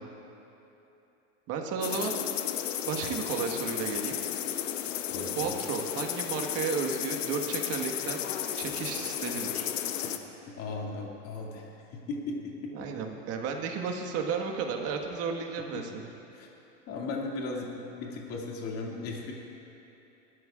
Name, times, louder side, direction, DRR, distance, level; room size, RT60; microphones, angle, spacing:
voice 1, 1.5-2.1 2.8-4.2 5.4-8.2 8.6-9.7 12.7-16.1, right 5 dB, 40° right, 2 dB, 1.5 m, -33 dB
sound 1, 1.8-10.2, left 10 dB, 90° left, 0.9 m, -33 dB
voice 2, 5.1-5.6 10.0-12.9 15.7-15.8 16.3-16.5 16.9-19.3, left 3 dB, 40° left, -2 dB, 2.3 m, -37 dB
22.0 x 12.5 x 2.5 m, 3.0 s
supercardioid pair, 130°, 37 cm